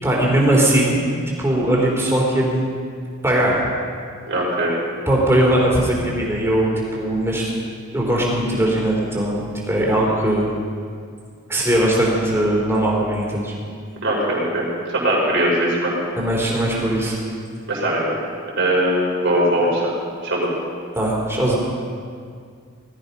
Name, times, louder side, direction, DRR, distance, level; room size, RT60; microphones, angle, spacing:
voice 1, 0.0-1.0 1.3-2.6 3.2-3.7 5.1-7.5 7.9-10.5 11.5-13.5 16.2-17.2 21.0-21.6, right 1 dB, 10° right, -3 dB, 3.9 m, -19 dB
voice 2, 4.3-4.7 14.0-14.7 15.0-15.9 17.7-18.2 18.5-19.9 20.2-20.5, right 1 dB, 55° right, -4 dB, 5.2 m, -20 dB
19.0 x 14.0 x 5.5 m, 2.2 s
head